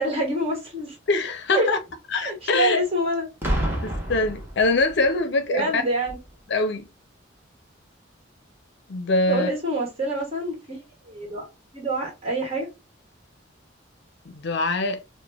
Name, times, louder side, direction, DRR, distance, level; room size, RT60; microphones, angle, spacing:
voice 1, 0.0-0.9 1.5-1.7 2.2-3.3 5.5-6.2 9.3-10.8 11.1-11.4 11.7-12.7, right 1 dB, 30° right, 1.4 m, -26 dB
voice 2, 1.1-1.8 2.1-2.8 3.8-5.8 6.5-6.9 8.9-9.5 14.3-15.0, left 3 dB, 60° left, 0.6 m, -23 dB
Boom, 3.4-5.2 6.1-6.3, right 1 dB, 10° right, 1.0 m, -28 dB
4.9 x 2.2 x 2.3 m
head